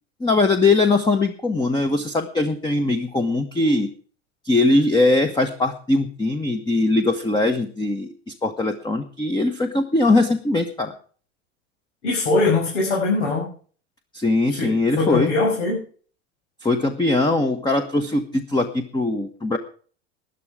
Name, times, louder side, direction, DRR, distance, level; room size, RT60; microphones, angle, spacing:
voice 1, 0.2-3.9 4.4-10.9 14.1-15.3 16.6-19.6, left 2 dB, 10° left, 7 dB, 1.2 m, -21 dB
voice 2, 12.0-13.5 14.5-15.8, left 3 dB, 85° left, -3 dB, 6.3 m, -22 dB
12.5 x 11.0 x 5.0 m, 0.43 s
hypercardioid pair, 105°, 35 cm